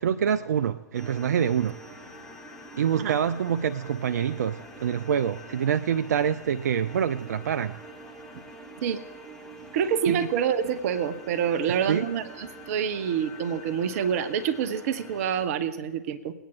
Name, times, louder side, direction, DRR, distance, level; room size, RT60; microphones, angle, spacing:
voice 1, 0.0-1.8 2.8-7.8 10.1-10.2 11.9-12.0, right 8 dB, 75° right, 0.4 m, -26 dB
sound 1, 0.9-15.5, equal, 5° left, 1.9 m, -45 dB
voice 2, 9.7-16.3, right 8 dB, 60° right, 0.9 m, -27 dB
20.5 x 9.0 x 3.9 m
figure-of-eight pair, 100°, 9 cm